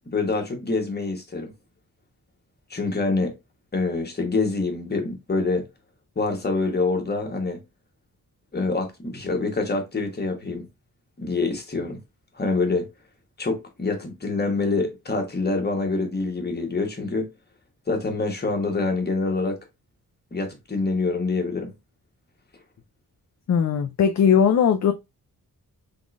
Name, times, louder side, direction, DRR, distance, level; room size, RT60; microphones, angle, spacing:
voice 1, 0.1-1.5 2.7-3.3 3.7-5.6 6.1-7.6 8.5-10.7 11.2-12.0 12.3-12.9 13.4-17.3 17.9-19.6 20.3-21.7, left 3 dB, 25° left, 1.2 m, -26 dB
voice 2, 23.5-24.9, left 7 dB, 50° left, 0.5 m, -19 dB
3.8 x 3.7 x 2.4 m
wide cardioid pair, 135°, 37 cm